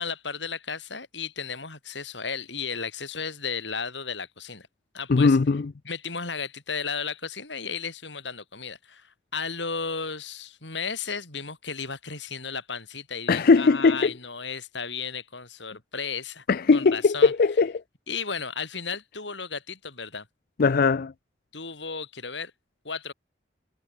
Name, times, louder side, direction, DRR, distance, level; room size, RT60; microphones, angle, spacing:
voice 1, 0.0-4.7 4.9-5.4 5.8-16.4 16.7-17.3 18.1-20.3 21.5-22.5 22.8-23.1, left 5 dB, 70° left, 6.3 m, -34 dB
voice 2, 5.1-5.7 13.3-14.1 16.5-17.8 20.6-21.1, left 4 dB, 55° left, 0.5 m, -20 dB
head